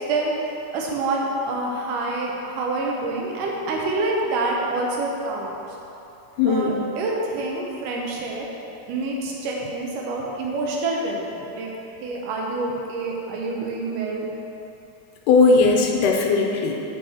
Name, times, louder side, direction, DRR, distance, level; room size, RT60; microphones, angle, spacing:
voice 1, 0.0-5.5 6.4-8.5 8.9-11.7 12.0-14.3, right 2 dB, 80° right, -2 dB, 2.5 m, -27 dB
voice 2, 6.4-6.9 15.3-16.8, left 4 dB, 80° left, 1 dB, 2.1 m, -18 dB
8.6 x 5.3 x 4.3 m, 2.9 s
omnidirectional pair, 3.7 m